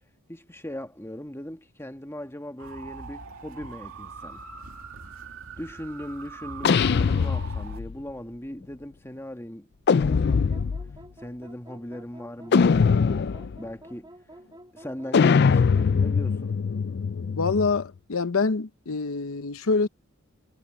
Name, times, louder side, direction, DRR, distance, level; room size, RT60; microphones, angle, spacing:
voice 1, 0.3-4.4 5.6-9.7 10.0-10.8 11.2-13.2 13.6-14.1 14.7-16.6, equal, 10° left, 1.6 m, -39 dB
sound 1, 2.6-7.8, right 4 dB, 75° right, 2.3 m, -42 dB
sound 2, 6.6-7.9 9.9-11.0 12.5-13.6 15.1-17.8, left 5 dB, 50° left, 0.4 m, -22 dB
sound 3, 10.1-16.0, right 1 dB, 20° right, 6.4 m, -49 dB
voice 2, 17.4-19.9, left 4 dB, 75° left, 0.8 m, -25 dB
head